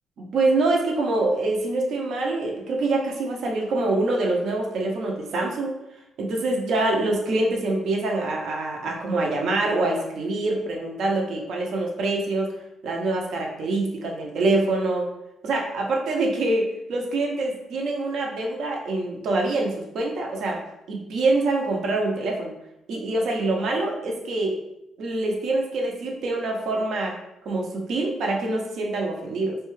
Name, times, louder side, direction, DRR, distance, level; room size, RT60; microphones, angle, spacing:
voice 1, 0.2-5.7 6.2-12.5 12.8-15.1 15.4-20.6 20.9-22.5 22.9-24.5 25.0-27.1 27.4-29.6, right 2 dB, 70° right, 0 dB, 0.6 m, -25 dB
2.6 x 2.2 x 3.1 m, 0.86 s
cardioid pair, 90°, 0 cm